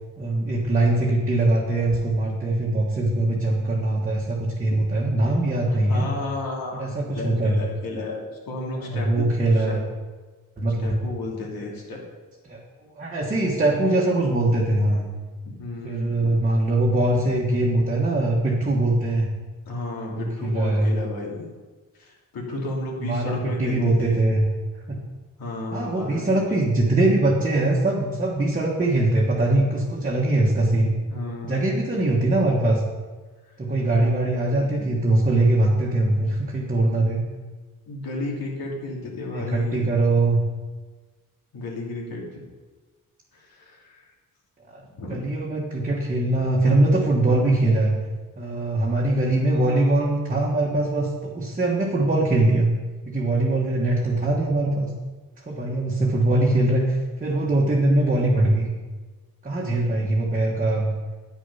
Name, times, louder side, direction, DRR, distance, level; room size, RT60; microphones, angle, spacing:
voice 1, 0.2-6.1 6.8-7.6 8.7-9.8 10.6-11.0 12.5-12.6 13.0-15.1 15.8-19.3 20.1-20.9 23.0-24.5 25.7-30.9 31.4-32.8 33.6-37.2 39.3-40.4 44.7-44.8 45.1-47.9 48.4-52.7 53.0-54.9 55.5-58.7 59.4-60.9, right 2 dB, 20° right, -4 dB, 1.4 m, -22 dB
voice 2, 5.7-9.3 9.5-9.8 10.8-12.0 15.6-16.4 19.7-21.5 22.0-24.2 25.4-26.3 31.1-31.7 33.7-34.0 34.6-34.7 37.9-39.8 41.5-42.4 43.3-44.0 44.9-45.2 59.8-60.0, left 2 dB, 75° left, -2 dB, 3.0 m, -33 dB
10.0 x 9.7 x 5.6 m, 1.3 s
wide cardioid pair, 165°, 36 cm